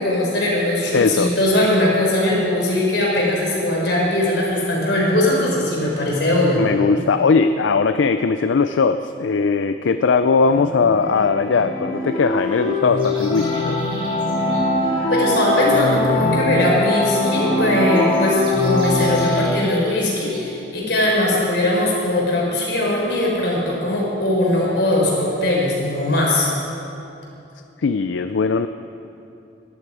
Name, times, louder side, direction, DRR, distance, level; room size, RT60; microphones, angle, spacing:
voice 1, 0.0-6.6 15.1-26.5, left 1 dB, 60° left, -3 dB, 4.5 m, -20 dB
voice 2, 0.9-1.3 6.5-13.8 27.8-28.7, left 4 dB, 80° left, 10 dB, 0.4 m, -19 dB
sound 1, 10.4-19.4, left 2 dB, 35° left, 4.0 m, -21 dB
sound 2, 13.0-14.6 17.9-20.4, right 1 dB, 30° right, 4.2 m, -39 dB
21.5 x 12.0 x 4.9 m, 2.8 s
head